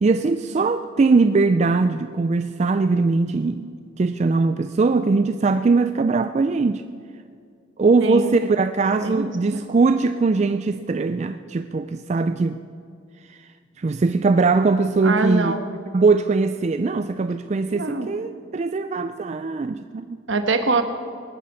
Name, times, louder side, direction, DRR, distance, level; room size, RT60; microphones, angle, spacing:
voice 1, 0.0-3.7 4.0-6.8 7.8-12.6 13.3-13.4 13.8-15.5 15.9-20.2, right 3 dB, 35° right, 0.3 m, -21 dB
voice 2, 8.0-8.3 9.0-9.6 15.0-15.6 17.7-18.1 20.3-20.8, right 3 dB, 65° right, 1.2 m, -23 dB
19.0 x 9.2 x 6.4 m
head